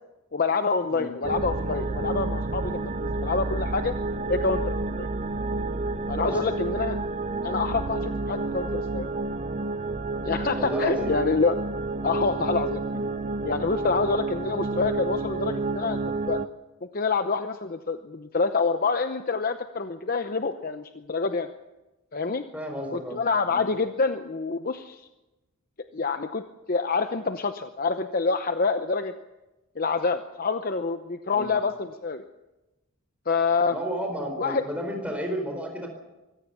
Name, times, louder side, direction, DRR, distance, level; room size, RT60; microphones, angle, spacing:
voice 1, 0.3-3.9 4.3-5.1 6.1-7.0 7.4-9.1 10.2-11.6 12.0-13.0 13.4-16.4 16.8-21.5 22.1-22.4 22.9-25.0 25.9-29.1 29.8-32.2 33.3-33.7 34.4-34.6, left 4 dB, 45° left, 8 dB, 0.8 m, -27 dB
sound 1, 1.2-16.5, right 3 dB, 35° right, 0.6 m, -30 dB
voice 2, 6.2-6.6 10.5-11.2 22.5-23.2 23.5-23.7 31.3-31.6 33.7-35.9, equal, 5° right, 2 dB, 4.5 m, -32 dB
24.0 x 16.5 x 7.0 m, 1.0 s
head